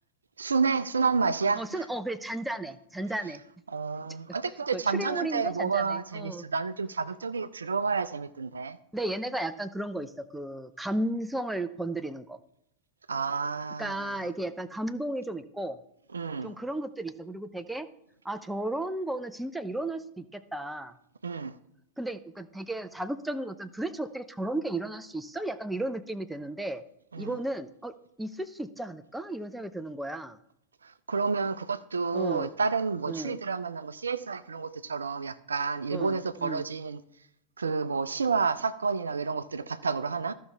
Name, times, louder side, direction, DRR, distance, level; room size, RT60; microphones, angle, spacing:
voice 1, 0.4-1.6 3.7-8.8 13.1-14.3 16.1-16.5 21.2-21.5 27.1-27.4 30.8-37.0 37.6-40.3, right 5 dB, 75° right, 0.4 m, -30 dB
voice 2, 1.6-3.4 4.7-6.5 8.9-12.4 13.8-15.8 16.4-17.9 18.2-20.9 22.0-26.8 27.2-27.9 28.2-30.4 32.1-32.5 33.1-33.4 35.9-36.6, right 1 dB, 5° right, 0.5 m, -34 dB
14.0 x 5.4 x 3.5 m
figure-of-eight pair, 90°, 0 cm